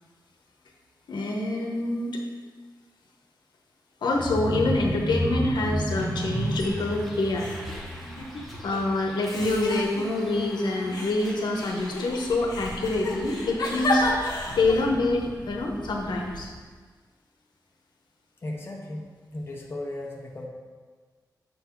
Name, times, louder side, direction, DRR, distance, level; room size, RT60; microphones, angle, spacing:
voice 1, 1.1-2.2 4.0-7.5 8.6-14.1 14.6-16.5, left 2 dB, 85° left, 0 dB, 0.9 m, -26 dB
sound 1, 4.1-9.9 10.2-10.5 10.8-10.9, right 1 dB, 75° right, 1.2 m, -31 dB
Bus, 5.9-16.4, equal, ahead, 0.9 m, -43 dB
sound 2, 6.5-7.0 7.3-8.8 9.3-10.4 10.9-14.9, left 2 dB, 60° left, 1.0 m, -32 dB
voice 2, 18.4-19.1 19.3-20.5, left 1 dB, 30° left, -1 dB, 0.8 m, -35 dB
6.9 x 3.9 x 4.6 m, 1.5 s
wide cardioid pair, 170°, 7 cm